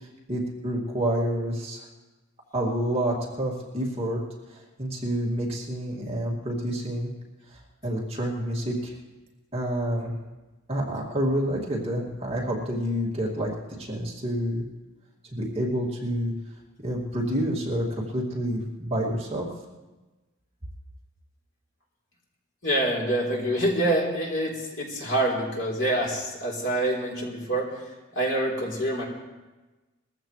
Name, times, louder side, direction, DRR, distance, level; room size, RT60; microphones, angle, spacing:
voice 1, 0.3-1.8 2.5-4.2 4.8-7.1 7.8-8.9 9.5-10.1 10.7-13.5 13.8-14.6 15.3-16.3 16.8-17.9 18.1-19.5, right 1 dB, 30° right, -3 dB, 2.4 m, -28 dB
voice 2, 22.6-27.7 28.1-29.1, right 1 dB, 60° left, -3 dB, 3.8 m, -26 dB
21.5 x 15.0 x 3.3 m, 1.2 s
head